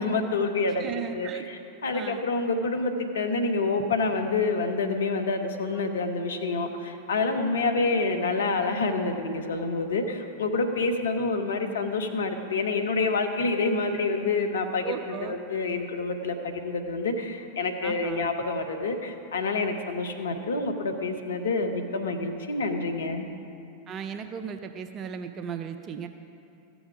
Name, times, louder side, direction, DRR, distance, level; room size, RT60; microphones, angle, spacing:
voice 1, 0.0-23.3, left 3 dB, 70° left, 5 dB, 0.9 m, -28 dB
voice 2, 0.8-1.5 1.9-2.3 14.8-15.4 17.8-18.3 23.9-26.1, right 7 dB, 30° right, 8 dB, 0.5 m, -36 dB
14.0 x 7.2 x 4.8 m, 2.7 s
figure-of-eight pair, 90°, 0 cm